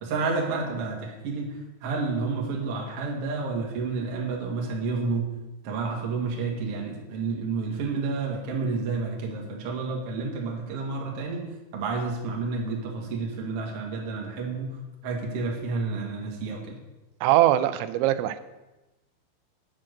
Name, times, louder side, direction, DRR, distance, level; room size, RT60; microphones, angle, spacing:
voice 1, 0.0-5.3 5.6-11.5 11.7-16.8, right 4 dB, 50° right, 0 dB, 1.8 m, -30 dB
voice 2, 17.2-18.4, right 13 dB, 85° right, 13 dB, 2.9 m, -21 dB
8.8 x 7.3 x 6.4 m, 1.0 s
omnidirectional pair, 5.1 m